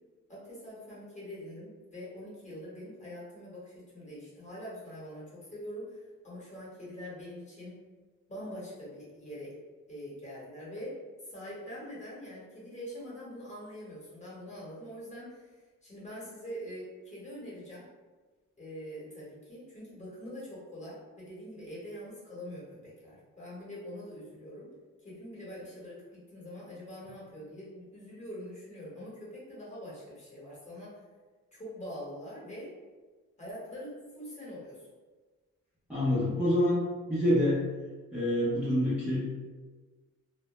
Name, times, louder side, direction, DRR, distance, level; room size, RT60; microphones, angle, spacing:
voice 1, 0.3-7.7 8.3-9.5 9.9-11.0 11.2-17.8 18.6-24.7 25.0-31.0 31.5-32.7 33.4-34.9, equal, 25° left, -8 dB, 1.1 m, -44 dB
voice 2, 35.9-36.8 37.1-37.6 38.1-39.4, equal, 5° right, -12 dB, 0.5 m, -26 dB
2.1 x 2.0 x 2.9 m, 1.3 s
cardioid pair, 135°, 29 cm